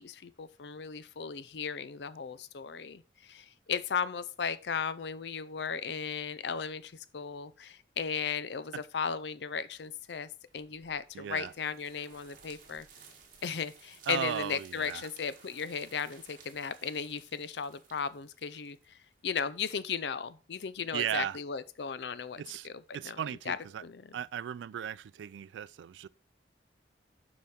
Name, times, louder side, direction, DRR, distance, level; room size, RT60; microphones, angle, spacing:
voice 1, 0.0-12.9 13.4-18.8 19.2-24.2, left 6 dB, 75° left, 0.5 m, -36 dB
sound 1, 10.5-19.3, right 5 dB, 50° right, 1.7 m, -58 dB
voice 2, 11.1-11.5 14.1-15.1 20.9-21.4 22.4-22.7 22.9-23.8 24.1-26.1, right 9 dB, 90° right, 0.3 m, -36 dB
7.0 x 5.0 x 4.2 m
head